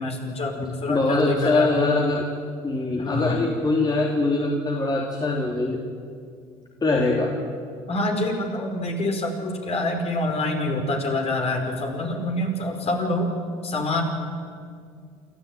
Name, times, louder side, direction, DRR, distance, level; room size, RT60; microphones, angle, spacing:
voice 1, 0.0-1.7 3.0-3.4 7.9-13.3 13.6-14.0, left 2 dB, 45° left, 2 dB, 5.4 m, -26 dB
voice 2, 0.9-2.3 2.6-5.8 6.8-7.3 13.0-13.1, left 2 dB, 30° left, -1 dB, 3.5 m, -23 dB
28.5 x 13.0 x 9.4 m, 2.2 s
hypercardioid pair, 65°, 15 cm